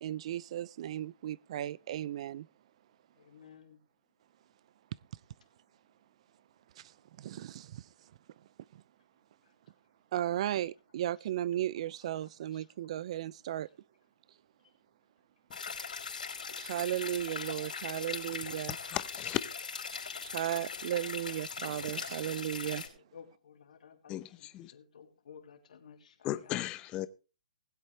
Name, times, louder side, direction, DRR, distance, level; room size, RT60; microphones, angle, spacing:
voice 1, 0.0-2.5 6.8-8.1 8.7-8.8 10.1-13.7 16.5-18.8 20.2-22.9, right 12 dB, 45° right, 0.5 m, -35 dB
voice 2, 3.2-3.8 9.4-9.5 12.0-12.7 20.5-22.0 22.3-22.4 22.6-26.6, left 7 dB, 65° left, 3.2 m, -56 dB
sound 1, 15.5-22.9, left 5 dB, 85° left, 4.3 m, -40 dB
voice 3, 18.7-19.4 24.1-24.7 26.2-27.1, left 15 dB, 20° left, 0.8 m, -35 dB
20.0 x 8.1 x 3.3 m
hypercardioid pair, 145°, 4 cm